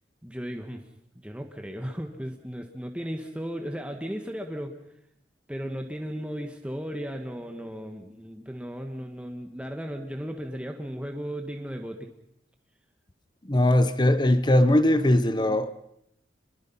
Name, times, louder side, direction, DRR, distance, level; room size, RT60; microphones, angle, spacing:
voice 1, 0.2-0.9 1.1-4.8 5.5-12.1, equal, 5° right, 1.5 m, -35 dB
voice 2, 13.4-15.7, left 1 dB, 25° left, 1.0 m, -20 dB
27.5 x 22.5 x 5.6 m
head